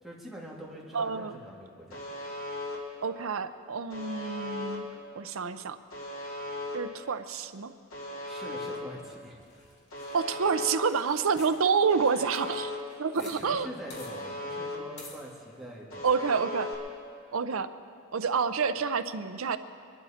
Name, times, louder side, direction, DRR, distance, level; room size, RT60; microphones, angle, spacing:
voice 1, 0.0-2.0 8.3-9.4 13.2-16.1, right 1 dB, ahead, -4 dB, 2.3 m, -44 dB
voice 2, 0.9-1.4 3.0-4.9 5.2-5.8 6.7-7.7 10.1-12.7 13.0-13.7 16.0-16.7 17.3-17.7 18.1-19.6, right 5 dB, 85° right, 10 dB, 0.6 m, -28 dB
Alarm, 1.9-2.8 3.9-4.8 5.9-6.8 7.9-8.8 9.9-10.8 11.9-12.8 13.9-14.8 15.9-16.7, left 1 dB, 85° left, 2.4 m, -37 dB
sound 1, 9.4-13.4 13.6-13.7 13.9-14.1 15.0-15.2, left 3 dB, 55° left, 2.4 m, -50 dB
22.5 x 12.0 x 4.3 m, 2.3 s
head